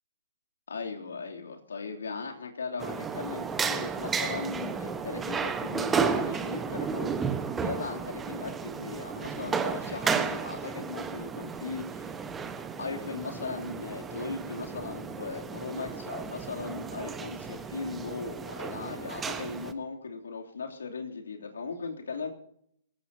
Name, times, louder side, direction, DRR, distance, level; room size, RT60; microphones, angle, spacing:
voice 1, 0.7-7.2 7.6-12.1 12.8-22.3, left 4 dB, 70° left, 1 dB, 3.1 m, -38 dB
sound 1, 2.8-19.7, right 6 dB, 15° right, 1.2 m, -33 dB
24.0 x 15.5 x 2.9 m, 0.71 s
figure-of-eight pair, 120°, 0 cm